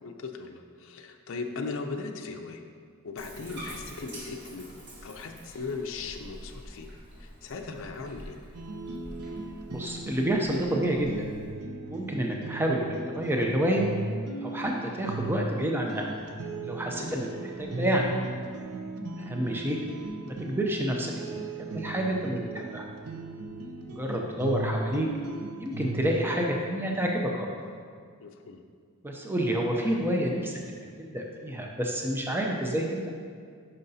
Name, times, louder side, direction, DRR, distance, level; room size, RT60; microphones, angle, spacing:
voice 1, 0.0-2.6 3.0-4.7 5.0-6.9 7.2-8.4 17.0-17.2 28.2-28.6, left 4 dB, 60° left, 4 dB, 0.5 m, -38 dB
Bathtub (filling or washing), 3.2-11.5, equal, 50° right, 1.5 m, -46 dB
sound 1, 8.5-26.1, right 2 dB, 80° right, 0.6 m, -37 dB
voice 2, 9.7-11.3 11.9-13.9 14.4-16.1 16.6-18.1 19.2-19.8 20.3-22.9 23.9-25.1 25.6-27.5 29.0-33.0, right 1 dB, 10° right, 0 dB, 0.4 m, -29 dB
9.3 x 5.5 x 2.7 m, 2.1 s
head